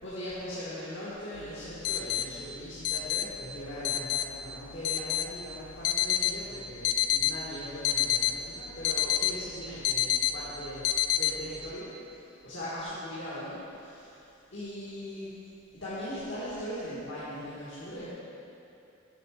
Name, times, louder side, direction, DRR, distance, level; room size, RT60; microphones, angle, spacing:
voice 1, 0.0-10.9 11.1-15.4 15.7-18.1, equal, 60° left, -10 dB, 1.8 m, -40 dB
sound 1, 1.4-11.7, left 11 dB, 80° left, 0.4 m, -30 dB
8.3 x 6.8 x 5.2 m, 2.7 s
head